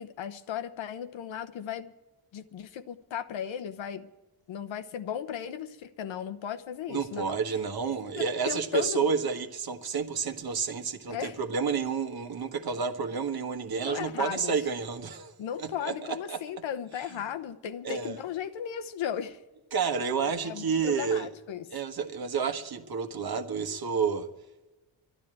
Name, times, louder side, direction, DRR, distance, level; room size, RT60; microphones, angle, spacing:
voice 1, 0.0-1.9 2.3-4.1 4.5-7.4 8.0-9.1 11.1-11.4 13.9-14.5 15.4-19.4 20.4-21.6, left 9 dB, 75° left, 1.0 m, -36 dB
voice 2, 6.9-16.4 17.1-17.2 17.8-18.2 19.7-21.3 21.7-24.3, right 6 dB, 50° right, 1.3 m, -30 dB
12.0 x 11.0 x 8.9 m
cardioid pair, 95°, 46 cm